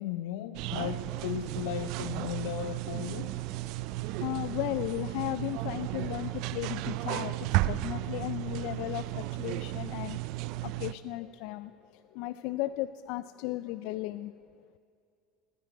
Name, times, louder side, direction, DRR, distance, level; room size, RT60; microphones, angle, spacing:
voice 1, 0.0-3.3, left 11 dB, 80° left, 0.7 m, -36 dB
sound 1, 0.5-10.9, right 17 dB, 55° right, 0.4 m, -34 dB
voice 2, 4.2-10.2 10.6-14.3, left 16 dB, 60° left, 0.3 m, -35 dB
15.0 x 9.3 x 9.5 m
cardioid pair, 170°, 0 cm